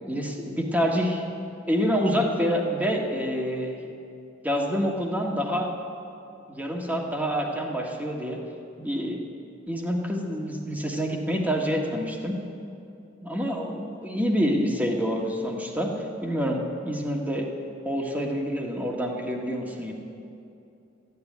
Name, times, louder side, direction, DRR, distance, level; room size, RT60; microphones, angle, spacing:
voice 1, 0.1-1.3 1.7-3.8 4.4-5.7 6.5-8.4 8.8-9.2 9.7-12.4 13.2-15.9 16.2-17.5 17.8-19.9, equal, 10° right, 0 dB, 1.6 m, -27 dB
13.5 x 9.7 x 9.4 m, 2.7 s
head